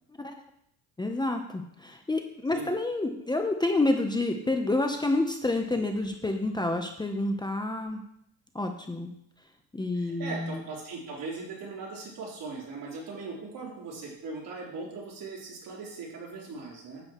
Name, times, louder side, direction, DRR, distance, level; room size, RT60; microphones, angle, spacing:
voice 1, 1.0-8.0 8.5-9.1 9.7-10.6, left 2 dB, 10° left, 4 dB, 0.8 m, -28 dB
voice 2, 9.9-17.0, right 3 dB, 60° right, -4 dB, 3.8 m, -39 dB
10.0 x 8.6 x 3.1 m, 0.75 s
cardioid pair, 105°, 37 cm